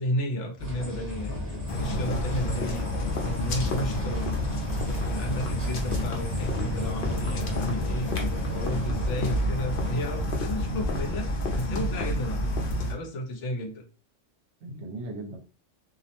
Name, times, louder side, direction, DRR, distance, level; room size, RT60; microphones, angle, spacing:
voice 1, 0.0-1.5 1.8-2.9 3.2-4.3 4.9-8.1 8.5-11.3 11.5-12.6 12.9-13.8, left 1 dB, 75° left, 3 dB, 0.9 m, -33 dB
sound 1, 0.6-9.4, left 2 dB, 20° right, 1.0 m, -35 dB
sound 2, 1.7-12.9, left 1 dB, 55° left, 0.7 m, -29 dB
voice 2, 1.8-2.6 14.6-15.4, right 2 dB, 70° right, 4 dB, 0.9 m, -39 dB
2.5 x 2.1 x 2.8 m, 0.33 s
omnidirectional pair, 1.3 m